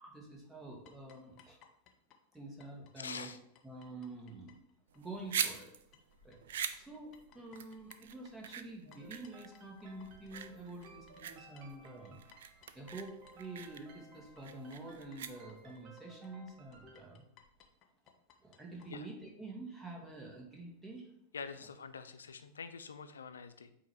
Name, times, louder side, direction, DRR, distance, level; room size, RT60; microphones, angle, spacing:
voice 1, 0.0-1.6 2.3-3.3 3.6-4.6 4.9-5.7 6.2-6.4 6.7-12.2 12.7-17.2 18.4-21.1, right 2 dB, 5° right, -2 dB, 1.7 m, -48 dB
sound 1, 0.9-5.7 5.9-18.9, left 7 dB, 35° left, 0.7 m, -64 dB
voice 2, 3.0-3.4 18.9-19.0 21.3-23.7, left 5 dB, 70° left, 11 dB, 0.5 m, -45 dB
sound 2, 4.9-15.8, right 8 dB, 60° right, 0.4 m, -43 dB
sound 3, 9.0-17.0, right 3 dB, 40° right, 1.1 m, -59 dB
8.3 x 2.8 x 4.7 m, 0.77 s
figure-of-eight pair, 90°, 0 cm